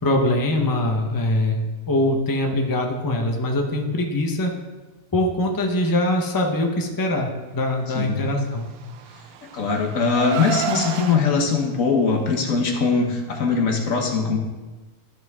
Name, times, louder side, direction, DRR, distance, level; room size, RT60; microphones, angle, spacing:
voice 1, 0.0-4.5 5.1-8.7, left 1 dB, 15° left, 2 dB, 0.8 m, -23 dB
voice 2, 7.9-8.3 9.5-14.4, left 5 dB, 60° left, 2 dB, 1.5 m, -21 dB
Car, 8.7-11.2, right 8 dB, 75° right, 1.1 m, -30 dB
12.5 x 5.9 x 3.6 m, 1.2 s
omnidirectional pair, 1.6 m